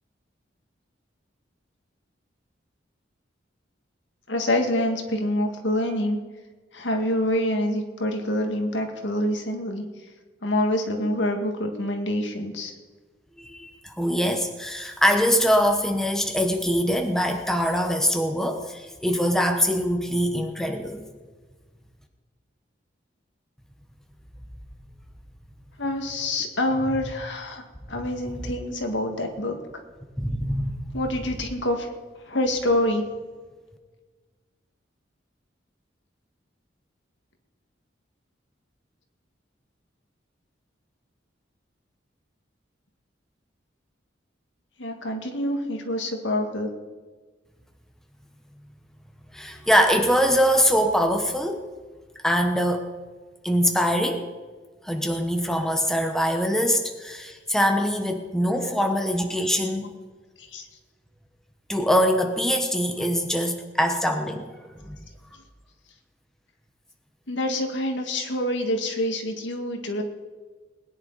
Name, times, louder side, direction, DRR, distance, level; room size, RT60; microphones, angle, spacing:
voice 1, 4.3-6.2 6.7-9.9 10.4-12.7 25.8-27.6 27.9-29.6 30.9-31.9 32.3-33.1 44.8-46.7 60.4-60.7 67.3-70.0, left 1 dB, 75° left, 4 dB, 1.9 m, -26 dB
voice 2, 13.4-21.0 30.2-30.9 49.3-51.7 52.2-52.9 53.4-54.3 54.8-59.9 61.7-65.0, equal, 5° left, 4 dB, 1.0 m, -23 dB
20.5 x 10.0 x 4.1 m, 1.4 s
head